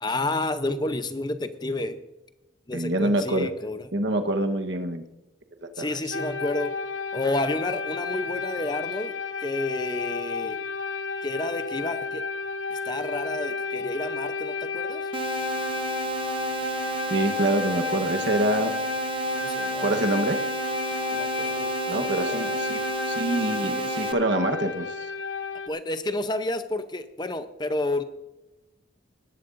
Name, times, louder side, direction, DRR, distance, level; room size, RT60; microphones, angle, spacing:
voice 1, 0.0-2.0 2.7-3.8 5.8-6.7 7.1-10.6 11.2-12.2 12.7-15.0 19.3-20.0 21.1-22.6 25.7-28.0, left 2 dB, 20° left, 10 dB, 0.7 m, -30 dB
voice 2, 2.7-3.5 3.9-5.0 5.6-6.0 17.1-18.7 19.8-20.4 21.9-22.8 23.1-25.1, right 1 dB, 65° right, 6 dB, 1.2 m, -26 dB
sound 1, 6.1-25.7, left 4 dB, 75° left, 0.8 m, -32 dB
sound 2, 15.1-24.1, right 2 dB, 25° right, 0.7 m, -31 dB
20.0 x 11.5 x 2.6 m, 1.0 s
head